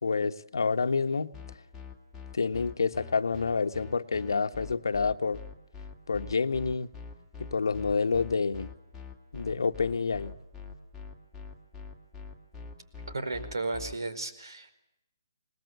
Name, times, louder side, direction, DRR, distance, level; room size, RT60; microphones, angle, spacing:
voice 1, 0.0-1.3 2.3-5.4 6.1-6.9 7.4-8.7 9.3-10.3, left 4 dB, 80° left, 1.3 m, -28 dB
sound 1, 1.3-13.9, left 5 dB, ahead, 2.2 m, -44 dB
voice 2, 13.1-14.7, right 3 dB, 85° right, 4.7 m, -34 dB
27.0 x 19.5 x 8.3 m
hypercardioid pair, 175°, 2 cm